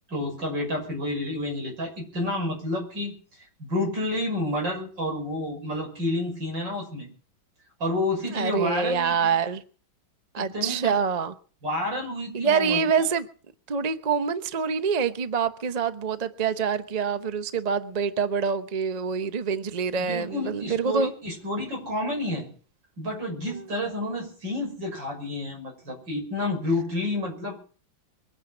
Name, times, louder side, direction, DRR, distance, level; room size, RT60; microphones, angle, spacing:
voice 1, 0.1-3.1 3.6-7.1 7.8-9.3 10.4-11.0 11.6-12.8 20.0-22.5 23.0-27.6, left 1 dB, 65° right, 6.7 m, -30 dB
voice 2, 8.3-9.6 10.3-11.3 12.3-13.3 13.7-21.1, right 6 dB, 45° right, 0.5 m, -26 dB
22.5 x 9.7 x 6.1 m
omnidirectional pair, 2.1 m